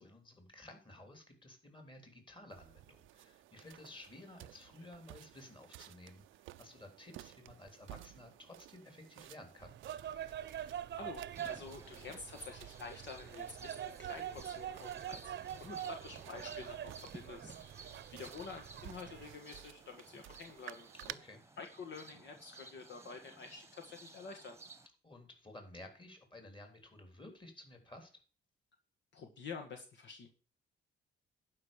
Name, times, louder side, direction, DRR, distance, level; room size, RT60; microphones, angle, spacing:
voice 1, 0.0-9.8 21.0-21.4 25.0-28.1, left 1 dB, 25° left, 5 dB, 3.6 m, -54 dB
sound 1, 2.5-21.1, right 15 dB, 85° right, 0.6 m, -55 dB
sound 2, 9.6-19.4, right 10 dB, 60° right, 0.8 m, -45 dB
voice 2, 10.5-20.9 21.6-24.6 29.1-30.3, left 4 dB, 65° left, 4 dB, 1.8 m, -49 dB
sound 3, 11.3-24.9, right 3 dB, 15° right, 1.2 m, -56 dB
11.5 x 5.5 x 7.2 m, 0.37 s
cardioid pair, 90°, 20 cm